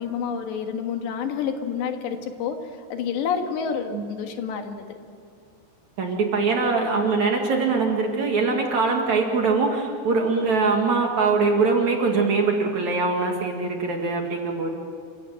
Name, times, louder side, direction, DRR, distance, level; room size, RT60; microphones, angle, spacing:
voice 1, 0.0-2.6 2.9-4.9, left 7 dB, 80° left, 5 dB, 3.8 m, -28 dB
voice 2, 6.0-14.7, right 4 dB, 50° right, 1 dB, 2.8 m, -22 dB
28.0 x 16.0 x 9.1 m, 2.3 s
omnidirectional pair, 5.0 m